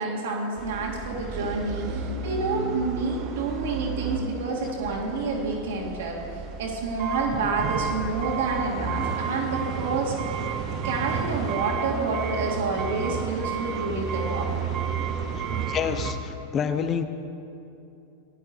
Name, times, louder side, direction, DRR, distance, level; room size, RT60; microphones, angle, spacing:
voice 1, 0.0-6.2 6.6-10.1 10.8-14.5, right 3 dB, 60° right, -2 dB, 2.1 m, -28 dB
sound 1, 0.6-16.1, right 6 dB, 40° right, 0.8 m, -31 dB
voice 2, 15.7-17.0, left 7 dB, 30° left, 9 dB, 0.7 m, -27 dB
15.5 x 11.0 x 3.1 m, 2.8 s
figure-of-eight pair, 90°, 0 cm